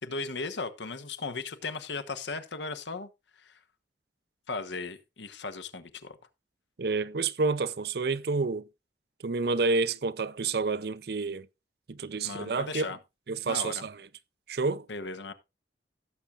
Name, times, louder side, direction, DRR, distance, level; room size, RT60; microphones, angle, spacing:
voice 1, 0.0-3.1 3.4-3.6 4.5-6.2 12.2-13.0 13.4-13.8 14.9-15.3, left 3 dB, 75° left, 1.1 m, -36 dB
voice 2, 6.8-8.6 9.2-11.5 11.9-12.9 13.3-14.0 14.5-14.9, right 4 dB, 60° right, 0.5 m, -29 dB
17.0 x 7.3 x 2.4 m
head